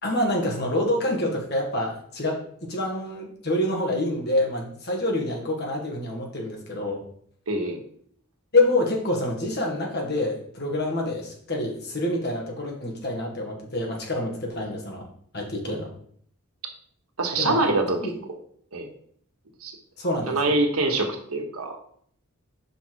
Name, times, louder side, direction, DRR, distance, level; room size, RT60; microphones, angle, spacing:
voice 1, 0.0-7.0 8.5-15.1 15.3-15.9 17.4-17.7 18.0-18.1 20.0-20.4, left 1 dB, 45° left, 0 dB, 1.7 m, -27 dB
voice 2, 7.5-7.8 15.7-15.8 17.2-18.0 18.7-18.9 19.6-19.7 20.3-21.8, right 2 dB, 80° right, 3 dB, 1.3 m, -24 dB
5.7 x 5.5 x 4.6 m, 0.62 s
head